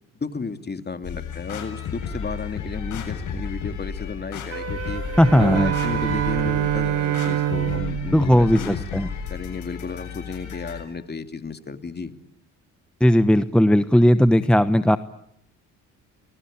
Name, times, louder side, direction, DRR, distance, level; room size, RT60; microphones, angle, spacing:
voice 1, 0.1-5.0 5.4-8.8 9.3-12.1, left 4 dB, 30° left, 8 dB, 2.6 m, -33 dB
sound 1, 1.0-10.8, left 6 dB, 65° left, 7.6 m, -33 dB
Wind instrument woodwind instrument, 4.5-7.9, right 6 dB, 45° right, 1.3 m, -33 dB
Bowed string instrument, 5.1-9.2, right 14 dB, 80° right, 1.1 m, -26 dB
voice 2, 5.2-5.7 8.1-9.1 13.0-15.0, equal, 5° left, 12 dB, 1.0 m, -17 dB
29.5 x 21.5 x 8.8 m, 0.74 s
supercardioid pair, 70°, 33 cm